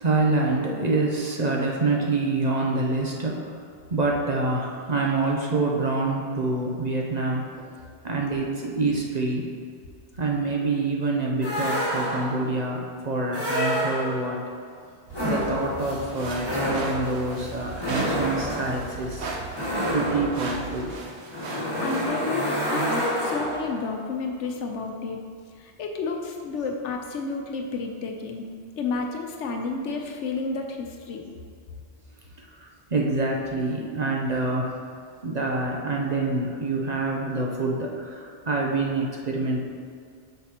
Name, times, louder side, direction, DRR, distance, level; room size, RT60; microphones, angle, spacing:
voice 1, 0.0-3.5 3.9-7.7 8.0-9.5 10.2-14.4 15.2-19.3 19.9-20.9 32.6-34.7 35.2-39.6, right 3 dB, 40° right, -1 dB, 0.8 m, -26 dB
sound 1, 11.4-12.5 13.3-14.4 15.1-23.8, equal, 20° left, 1.5 m, -28 dB
sound 2, 15.1-21.0, right 8 dB, 90° right, 0.9 m, -42 dB
sound 3, 16.1-22.0, right 2 dB, 70° right, 1.1 m, -37 dB
voice 2, 21.5-25.2 25.6-28.5 28.8-31.2, left 4 dB, 80° left, 3 dB, 1.1 m, -31 dB
8.2 x 5.7 x 3.0 m, 2.1 s
omnidirectional pair, 1.2 m